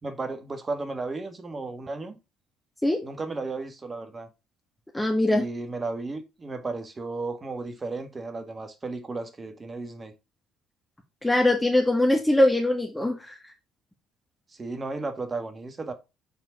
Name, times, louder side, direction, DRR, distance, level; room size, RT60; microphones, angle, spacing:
voice 1, 0.0-2.2 3.0-4.3 5.3-10.1 14.5-15.9, right 3 dB, 30° right, 1.7 m, -34 dB
voice 2, 4.9-5.4 11.2-13.3, left 1 dB, 10° left, 1.6 m, -22 dB
6.9 x 4.3 x 4.1 m
hypercardioid pair, 55°, 0 cm